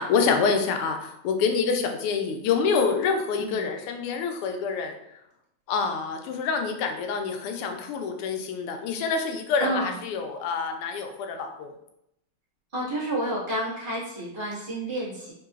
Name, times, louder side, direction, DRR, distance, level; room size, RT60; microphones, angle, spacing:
voice 1, 0.0-4.9 5.7-11.7, left 5 dB, 90° left, 5 dB, 1.5 m, -26 dB
voice 2, 12.7-15.3, right 1 dB, 30° right, -9 dB, 1.3 m, -30 dB
3.7 x 3.3 x 2.4 m, 0.80 s
omnidirectional pair, 2.4 m